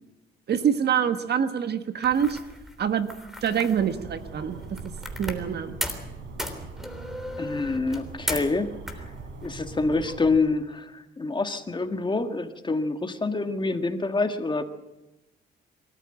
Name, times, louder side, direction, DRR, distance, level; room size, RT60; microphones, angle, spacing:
voice 1, 0.5-2.4 2.8-3.1 3.4-4.6 5.2-5.8, right 8 dB, 55° right, 9 dB, 1.5 m, -25 dB
sound 1, 2.0-5.5 5.8-6.1 6.4-8.6 8.9-9.5, equal, ahead, 3.3 m, -36 dB
sound 2, 3.8-10.4, right 4 dB, 75° right, 3.8 m, -42 dB
voice 2, 7.4-9.0 9.4-14.6, left 3 dB, 25° left, 7 dB, 1.8 m, -27 dB
24.0 x 14.0 x 9.0 m, 1.0 s
cardioid pair, 90°, 20 cm